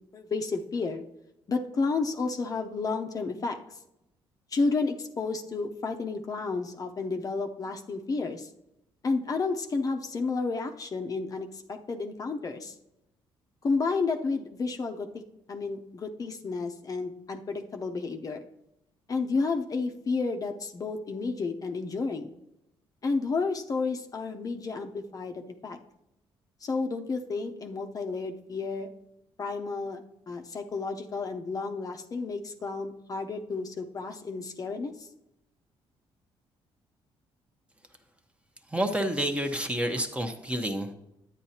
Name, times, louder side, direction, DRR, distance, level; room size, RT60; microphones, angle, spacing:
voice 1, 0.1-1.1 1.5-3.6 4.5-8.5 9.0-12.8 13.6-15.1 15.5-18.5 19.1-22.3 23.0-25.8 26.6-28.9 29.4-35.1, left 4 dB, 35° left, 4 dB, 0.7 m, -31 dB
voice 2, 38.7-40.9, right 1 dB, 10° right, 6 dB, 0.9 m, -29 dB
10.5 x 8.9 x 2.8 m, 0.86 s
cardioid pair, 100°, 10 cm